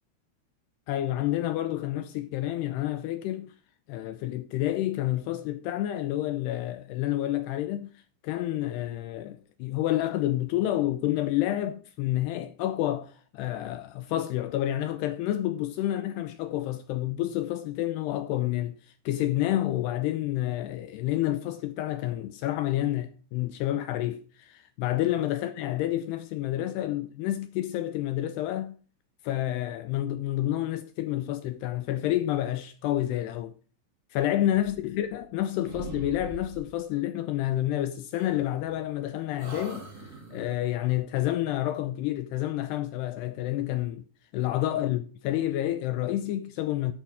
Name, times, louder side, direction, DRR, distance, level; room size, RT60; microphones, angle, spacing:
voice 1, 0.9-3.5 3.9-7.9 8.2-18.8 19.1-28.8 29.2-33.5 34.1-39.8 40.3-44.0 44.3-46.9, left 13 dB, 80° left, 2.4 m, -29 dB
sound 1, 34.5-35.4 35.6-36.8 38.2-39.0 39.4-40.6, right 2 dB, 45° right, 1.2 m, -43 dB
11.5 x 11.5 x 3.5 m
omnidirectional pair, 5.5 m